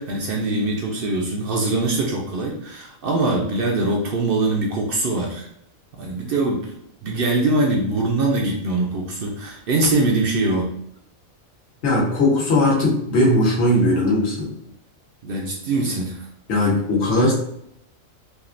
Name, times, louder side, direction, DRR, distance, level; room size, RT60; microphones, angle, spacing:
voice 1, 0.0-5.5 5.9-6.7 7.0-10.7 15.2-16.3, right 2 dB, 65° right, 0 dB, 0.6 m, -22 dB
voice 2, 11.8-14.5 16.5-17.3, left 1 dB, 55° left, -3 dB, 1.1 m, -18 dB
3.5 x 2.3 x 2.5 m, 0.74 s
omnidirectional pair, 1.4 m